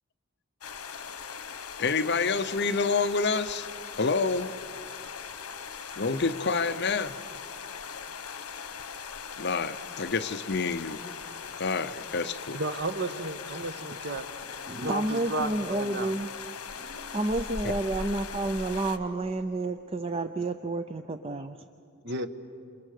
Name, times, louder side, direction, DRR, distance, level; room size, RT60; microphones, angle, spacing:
sound 1, 0.6-19.0, left 6 dB, 80° left, 1.3 m, -40 dB
voice 1, 1.8-4.5 6.0-7.2 9.4-11.0 11.6-12.6 17.6-17.7, left 4 dB, 50° left, 11 dB, 0.8 m, -28 dB
voice 2, 12.5-14.2 14.8-16.1 22.0-22.3, right 2 dB, 50° right, 8 dB, 1.4 m, -33 dB
voice 3, 14.7-16.3 16.8-21.6, right 2 dB, 25° right, 9 dB, 0.5 m, -30 dB
28.5 x 28.5 x 6.7 m, 2.5 s
head